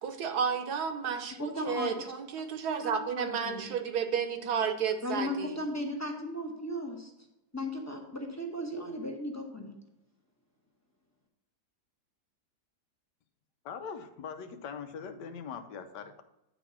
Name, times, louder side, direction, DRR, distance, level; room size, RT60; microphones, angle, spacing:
voice 1, 0.0-5.6, right 7 dB, 70° right, 7 dB, 1.3 m, -32 dB
voice 2, 1.4-2.0 2.8-3.6 5.0-7.1 7.5-9.7, left 1 dB, 15° left, 1 dB, 0.7 m, -36 dB
voice 3, 13.6-16.2, left 6 dB, 90° left, 7 dB, 1.3 m, -41 dB
9.3 x 4.0 x 5.7 m, 0.90 s
omnidirectional pair, 1.8 m